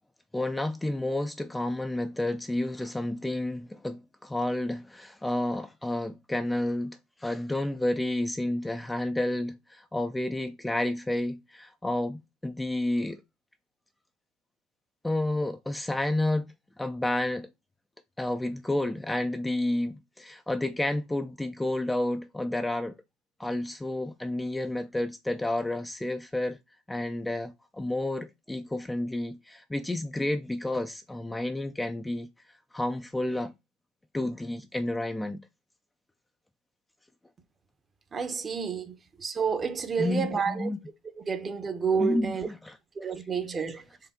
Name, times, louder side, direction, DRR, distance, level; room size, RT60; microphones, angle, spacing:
voice 1, 0.3-13.2 15.0-17.5 18.2-23.0 23.4-26.6 26.9-32.3 32.7-33.5 34.1-35.4 40.0-40.8 42.0-42.8, left 1 dB, 10° left, 0.4 m, -30 dB
voice 2, 38.1-40.7 41.3-42.5 43.0-43.8, right 6 dB, 30° right, 0.8 m, -29 dB
4.7 x 2.7 x 3.6 m
hypercardioid pair, 75°, 0 cm